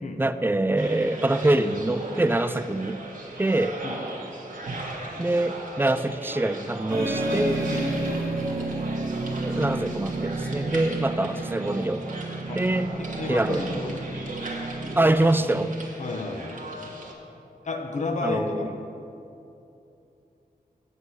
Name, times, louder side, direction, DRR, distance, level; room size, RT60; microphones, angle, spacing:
voice 1, 0.2-3.0 3.4-3.8 5.2-7.7 9.4-12.0 12.5-12.9 13.3-13.8 15.0-15.7 18.2-18.7, right 2 dB, 15° right, 12 dB, 0.3 m, -24 dB
sound 1, 0.8-17.1, right 2 dB, 55° right, 1.3 m, -38 dB
sound 2, 6.9-15.8, right 2 dB, 80° right, 1.3 m, -31 dB
voice 2, 13.0-14.2 16.0-16.6 17.6-18.8, left 3 dB, 50° left, 3 dB, 0.9 m, -32 dB
8.1 x 7.9 x 5.7 m, 2.8 s
wide cardioid pair, 95°, 16 cm